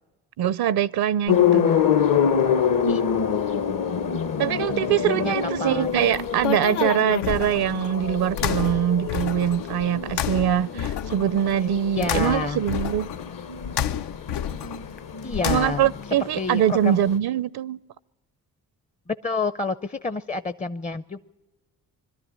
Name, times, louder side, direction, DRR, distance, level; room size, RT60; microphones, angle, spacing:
voice 1, 0.4-1.7 4.4-13.1 15.5-17.8, right 10 dB, 65° right, 0.6 m, -23 dB
sound 1, 1.3-17.2, left 7 dB, 50° left, 1.0 m, -26 dB
voice 2, 5.0-6.0 11.9-12.6 15.2-15.9 16.4-17.0 19.1-21.2, left 3 dB, 20° left, 0.6 m, -29 dB
sound 2, 5.8-16.0, left 10 dB, 70° left, 0.6 m, -31 dB
22.0 x 12.5 x 9.9 m
supercardioid pair, 45°, 42 cm